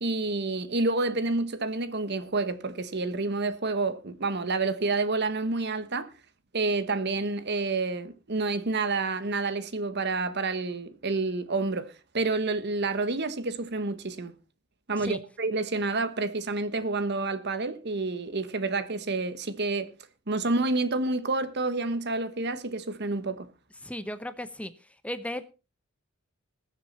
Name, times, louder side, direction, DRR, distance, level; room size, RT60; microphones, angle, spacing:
voice 1, 0.0-6.1 6.5-14.3 14.9-19.9 20.3-23.5, right 3 dB, 55° right, 1.3 m, -29 dB
voice 2, 23.8-24.7 25.0-25.4, left 1 dB, 5° left, 0.8 m, -35 dB
20.0 x 7.5 x 4.3 m
head